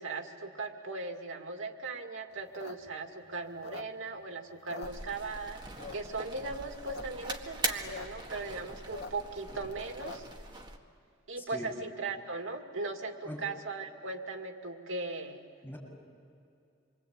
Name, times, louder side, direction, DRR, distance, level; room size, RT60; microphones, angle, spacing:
voice 1, 0.0-5.6 5.9-10.3 11.3-15.4, right 3 dB, 80° right, 4 dB, 2.3 m, -38 dB
sound 1, 2.4-4.2 4.5-5.4 5.8-6.2 6.6-7.0 7.3-7.4 7.5-8.1 8.4-10.4, left 4 dB, 55° left, 1.1 m, -45 dB
sound 2, 4.8-10.8, right 3 dB, 25° right, 1.7 m, -41 dB
voice 2, 11.4-11.7 13.2-13.5 15.6-15.8, equal, 10° left, -5 dB, 7.1 m, -41 dB
27.5 x 23.5 x 8.8 m, 2.4 s
head